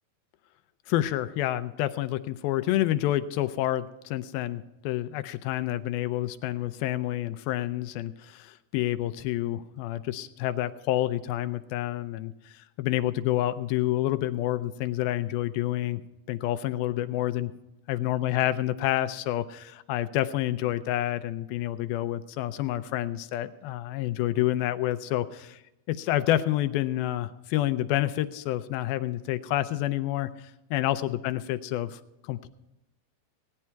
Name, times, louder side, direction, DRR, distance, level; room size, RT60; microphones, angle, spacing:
voice 1, 0.9-16.0 16.3-17.5 17.9-25.6 25.9-30.3 30.7-32.5, left 14 dB, 80° left, 11 dB, 2.4 m, -28 dB
17.5 x 9.8 x 4.5 m, 0.93 s
omnidirectional pair, 4.3 m